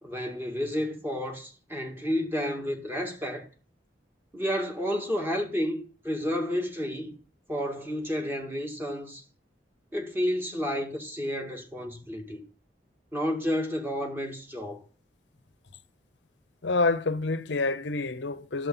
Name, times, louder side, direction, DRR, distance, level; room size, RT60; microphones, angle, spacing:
voice 1, 0.0-3.5 4.3-7.2 7.5-9.2 9.9-12.4 13.1-14.8, equal, 15° right, 2.0 m, -31 dB
voice 2, 16.6-18.7, left 3 dB, 90° left, 0.8 m, -27 dB
11.0 x 7.6 x 5.6 m
head